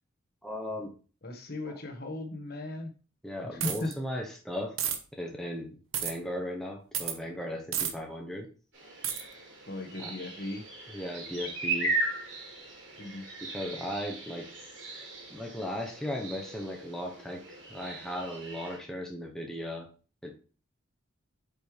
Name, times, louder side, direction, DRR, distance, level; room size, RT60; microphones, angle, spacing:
voice 1, 0.4-0.9 3.2-4.8 5.1-8.5 10.0-10.1 10.9-12.0 13.4-14.5 15.3-19.9 20.2-20.4, equal, ahead, 0 dB, 0.8 m, -37 dB
voice 2, 1.2-2.9 3.5-3.9 9.7-10.6 13.0-13.2, left 2 dB, 50° left, 5 dB, 1.3 m, -37 dB
sound 1, 3.6-3.9 4.8-5.0 5.9-6.1 6.9-7.2 7.7-7.9 9.0-9.2, right 9 dB, 80° right, 1.1 m, -30 dB
sound 2, 8.7-18.8, right 2 dB, 60° right, 3.5 m, -37 dB
8.5 x 5.3 x 3.3 m, 0.37 s
head